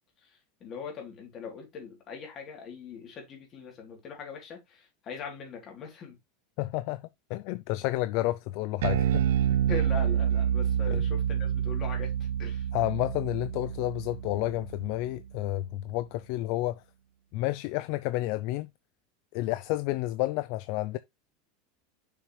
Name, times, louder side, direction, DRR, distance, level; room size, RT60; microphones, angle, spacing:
voice 1, 0.6-6.2 9.7-12.7, left 5 dB, 25° left, 3.2 m, -41 dB
voice 2, 6.6-7.0 7.3-9.3 10.9-11.0 12.7-16.8 17.3-18.7 19.3-21.0, left 17 dB, 45° left, 0.4 m, -30 dB
Bass guitar, 8.8-15.3, right 9 dB, 90° right, 0.4 m, -28 dB
6.8 x 6.1 x 3.2 m
supercardioid pair, 170°, 0 cm